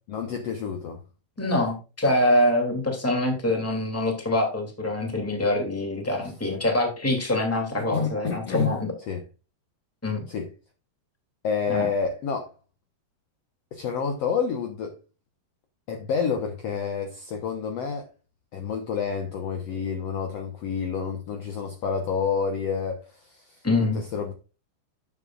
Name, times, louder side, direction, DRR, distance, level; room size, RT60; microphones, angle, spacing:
voice 1, 0.1-1.0 7.8-8.8 9.1-9.2 10.3-10.5 11.4-12.5 13.7-15.0 15.9-18.1 18.5-23.6 23.9-24.3, left 6 dB, 75° left, 1.5 m, -29 dB
voice 2, 1.4-8.9 10.0-10.3 11.7-11.9 23.6-24.0, left 1 dB, 5° left, 1.9 m, -25 dB
12.0 x 7.6 x 2.4 m
omnidirectional pair, 4.5 m